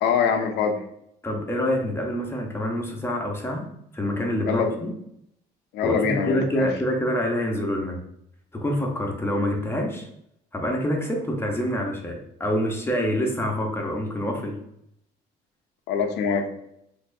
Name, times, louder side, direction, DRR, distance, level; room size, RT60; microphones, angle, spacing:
voice 1, 0.0-0.8 4.5-4.7 5.7-6.7 15.9-16.5, left 6 dB, 80° left, 6 dB, 0.6 m, -23 dB
voice 2, 1.2-3.7 3.9-4.9 5.8-8.0 8.5-10.1 10.5-14.6, equal, 15° left, 1 dB, 0.9 m, -26 dB
4.2 x 2.7 x 2.6 m, 0.75 s
cardioid pair, 95°, 17 cm